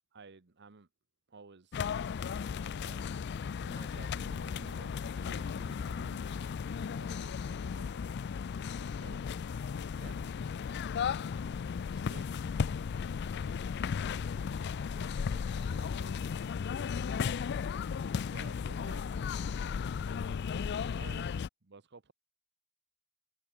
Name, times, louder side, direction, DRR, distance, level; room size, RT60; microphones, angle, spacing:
voice 1, 0.1-0.9 1.3-3.3 3.6-6.2 9.0-9.2 10.0-10.2 11.9-12.5 18.3-19.1 21.0-21.3 21.6-22.1, right 4 dB, 55° right, 1.0 m, -54 dB
sound 1, 1.7-21.5, left 6 dB, 55° left, 0.4 m, -35 dB
voice 2, 6.0-8.2 8.8-9.2 9.6-10.3 14.8-17.8 19.5-20.4, right 3 dB, 80° right, 3.4 m, -61 dB
head